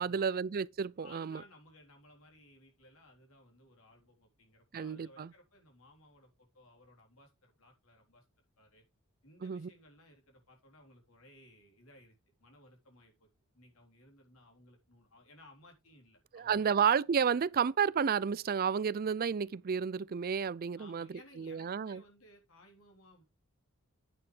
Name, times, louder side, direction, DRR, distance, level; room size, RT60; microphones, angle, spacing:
voice 1, 0.0-1.4 4.7-5.3 9.4-9.7 16.3-21.1 21.4-22.0, right 7 dB, 45° right, 0.4 m, -31 dB
voice 2, 1.0-8.3 8.6-8.8 9.2-13.3 13.5-16.8 20.8-23.2, left 1 dB, 90° left, 3.7 m, -60 dB
9.6 x 9.1 x 3.3 m
head